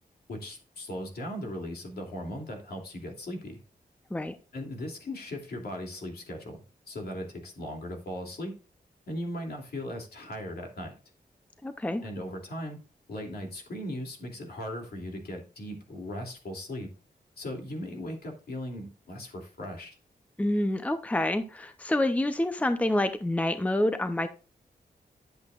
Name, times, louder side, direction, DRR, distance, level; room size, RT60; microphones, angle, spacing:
voice 1, 0.3-3.6 4.5-8.5 9.1-10.9 12.0-12.8 13.1-16.9 17.4-19.9, left 1 dB, 75° left, 1 dB, 2.8 m, -38 dB
voice 2, 11.6-12.0 20.4-24.3, left 1 dB, 10° left, 9 dB, 0.6 m, -27 dB
10.5 x 8.0 x 2.4 m, 0.34 s
wide cardioid pair, 115°, 17 cm